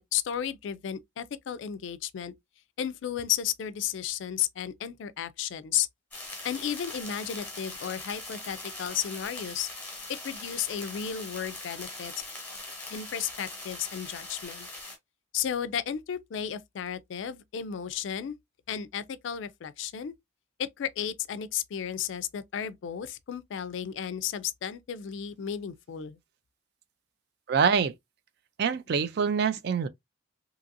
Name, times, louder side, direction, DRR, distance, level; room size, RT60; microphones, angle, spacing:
voice 1, 0.0-2.3 2.8-5.9 6.4-9.7 10.1-12.1 12.9-14.7 15.3-18.4 18.7-20.1 20.6-26.2, left 9 dB, 70° left, 0.3 m, -33 dB
sound 1, 6.1-15.0, left 2 dB, 10° left, 1.0 m, -41 dB
voice 2, 27.5-27.9 28.6-29.9, right 6 dB, 55° right, 0.3 m, -25 dB
2.8 x 2.6 x 2.4 m
head